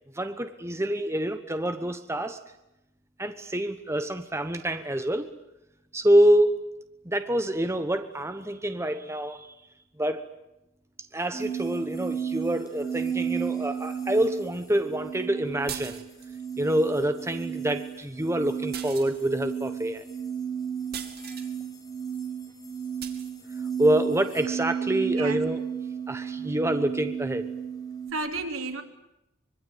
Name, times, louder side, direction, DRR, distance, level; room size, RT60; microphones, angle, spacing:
voice 1, 0.1-2.4 3.2-5.3 5.9-6.5 7.0-9.5 10.0-10.2 11.1-16.0 16.6-20.0 23.8-25.6 26.1-27.4, right 1 dB, 15° right, 9 dB, 1.1 m, -26 dB
sound 1, 11.3-28.1, right 7 dB, 15° left, 5.5 m, -33 dB
sound 2, 15.7-16.4 18.7-19.5 20.9-21.5 23.0-23.3, right 8 dB, 50° right, 2.6 m, -40 dB
voice 2, 25.0-25.4 28.1-28.8, right 3 dB, 80° right, 4 dB, 3.6 m, -32 dB
25.0 x 23.5 x 9.4 m, 0.88 s
head